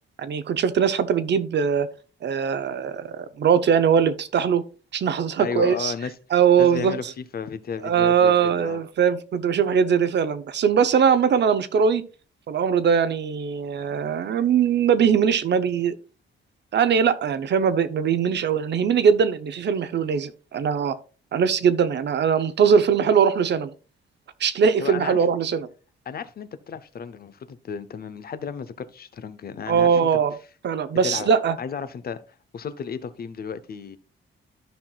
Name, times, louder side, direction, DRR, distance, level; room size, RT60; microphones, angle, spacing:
voice 1, 0.2-1.9 2.2-4.6 4.9-5.9 6.3-7.0 7.8-12.0 12.5-16.0 16.7-21.0 21.3-23.7 24.4-25.7 29.7-30.3 30.6-31.6, right 7 dB, 55° right, 0.7 m, -21 dB
voice 2, 5.4-6.1 6.6-8.8 24.8-25.3 26.1-30.2 31.0-31.3 31.6-32.2 32.5-34.0, left 6 dB, 45° left, 0.7 m, -33 dB
13.0 x 5.7 x 2.3 m
wide cardioid pair, 135°, 21 cm